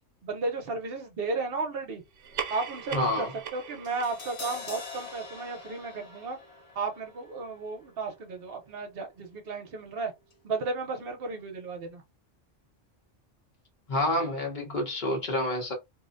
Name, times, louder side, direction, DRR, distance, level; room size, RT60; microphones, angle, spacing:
voice 1, 0.2-2.0 2.5-6.4 6.7-10.1 10.4-12.0, right 3 dB, 55° right, 0.9 m, -34 dB
sound 1, 2.1-7.0, right 8 dB, 80° right, 0.9 m, -41 dB
voice 2, 2.9-3.3 13.9-15.7, left 1 dB, 45° left, 0.9 m, -28 dB
Crash cymbal, 3.8-10.0 10.3-10.4, left 4 dB, 65° left, 1.4 m, -45 dB
2.6 x 2.1 x 2.4 m
omnidirectional pair, 1.2 m